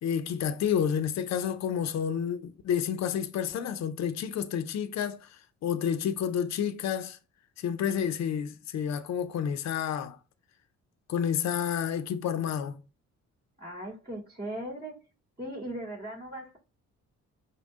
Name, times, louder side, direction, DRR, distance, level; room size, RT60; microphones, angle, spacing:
voice 1, 0.0-5.3 5.6-7.2 7.6-10.2 11.1-12.8, left 8 dB, 60° left, 0.7 m, -30 dB
voice 2, 13.6-14.9 15.4-16.6, right 1 dB, 30° right, 2.5 m, -38 dB
5.4 x 2.2 x 3.6 m
cardioid pair, 90°, 30 cm